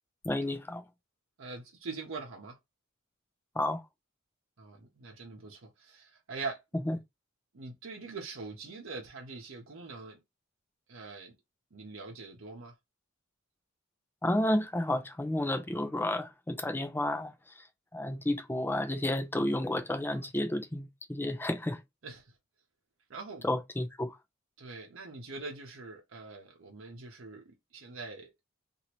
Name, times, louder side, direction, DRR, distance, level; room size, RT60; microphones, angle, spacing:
voice 1, 0.2-0.8 3.6-3.8 6.8-7.0 14.2-17.3 17.9-21.8 23.4-24.1, left 1 dB, 10° left, 0.5 m, -31 dB
voice 2, 1.4-2.6 4.6-6.6 7.5-10.2 10.9-11.3 11.7-12.7 20.1-20.3 22.0-22.2 23.1-23.5 24.6-27.4 27.7-28.3, right 4 dB, 70° right, 0.8 m, -43 dB
2.9 x 2.7 x 2.9 m
head